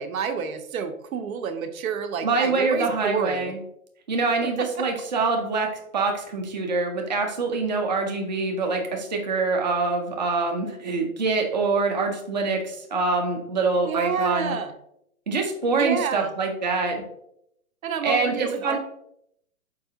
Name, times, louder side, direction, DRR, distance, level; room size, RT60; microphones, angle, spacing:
voice 1, 0.0-3.5 13.8-14.7 15.7-16.3 17.8-18.8, right 6 dB, 70° right, 8 dB, 0.6 m, -28 dB
voice 2, 2.2-3.6 4.1-14.6 15.3-17.0 18.0-18.8, right 3 dB, 35° right, 2 dB, 0.4 m, -25 dB
4.6 x 2.4 x 2.6 m, 0.75 s
hypercardioid pair, 160°, 42 cm